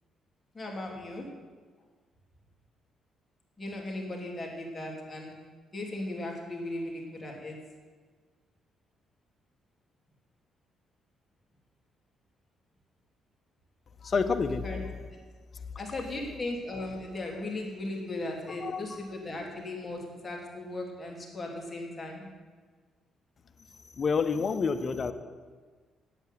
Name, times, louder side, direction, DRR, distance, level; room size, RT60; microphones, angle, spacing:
voice 1, 0.5-1.3 3.6-5.3 5.7-7.6 14.6-14.8 15.1-15.2 15.7-22.3, left 2 dB, 25° left, 0 dB, 3.1 m, -37 dB
voice 2, 14.0-14.7 18.6-19.0 24.0-25.1, left 5 dB, 45° left, 10 dB, 0.9 m, -28 dB
9.0 x 8.4 x 9.3 m, 1.5 s
cardioid pair, 90°, 0 cm